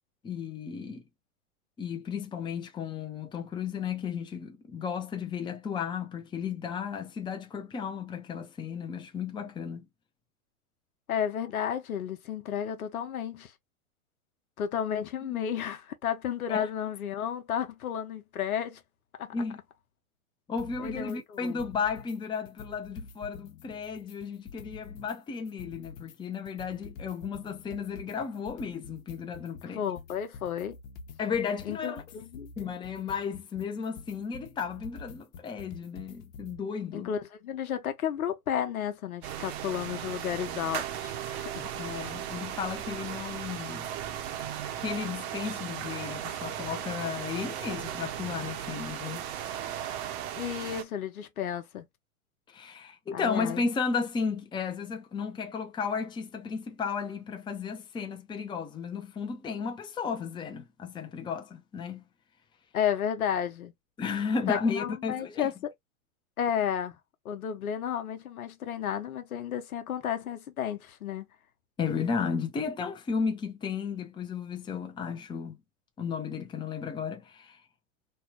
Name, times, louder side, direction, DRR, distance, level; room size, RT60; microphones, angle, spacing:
voice 1, 0.2-1.0 1.8-9.9 15.3-15.4 16.5-16.7 19.3-19.6 20.5-29.8 31.2-32.0 32.6-37.1 41.8-43.9 44.8-49.3 52.5-62.0 64.0-65.5 71.8-75.6 76.0-77.6, left 6 dB, 10° left, 0.6 m, -34 dB
voice 2, 11.1-13.5 14.6-18.8 19.2-19.3 20.8-21.7 29.7-30.8 31.6-32.5 36.9-41.7 50.4-51.9 53.1-53.6 62.7-63.7 64.5-65.7 66.4-67.0 67.2-71.3, left 9 dB, 85° left, 1.0 m, -32 dB
sound 1, 20.6-21.2 21.5-22.2 22.5-25.2 25.5-36.6, left 5 dB, 55° left, 1.1 m, -47 dB
sound 2, 39.2-50.8, right 10 dB, 50° right, 0.8 m, -36 dB
3.2 x 2.3 x 3.0 m
hypercardioid pair, 115°, 42 cm